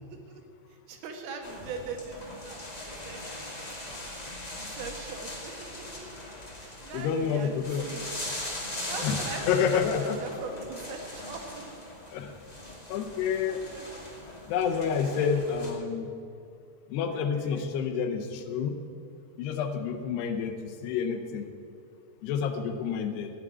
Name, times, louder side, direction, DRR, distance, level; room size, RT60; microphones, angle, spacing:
voice 1, 0.1-0.4 0.7-4.1 4.6-6.0 6.6-8.1 8.9-11.7 13.4-14.1 14.8-15.5 17.1-17.7, right 4 dB, 65° right, 3 dB, 3.1 m, -42 dB
sound 1, 1.4-15.7, left 1 dB, 45° left, 0.5 m, -40 dB
voice 2, 6.9-7.9 9.0-9.2 9.5-10.4 12.1-12.4 12.9-13.6 14.5-16.1 16.9-18.8 19.4-21.5 22.2-23.3, left 7 dB, 75° left, 6 dB, 2.8 m, -29 dB
14.5 x 7.4 x 9.5 m, 2.4 s
omnidirectional pair, 5.0 m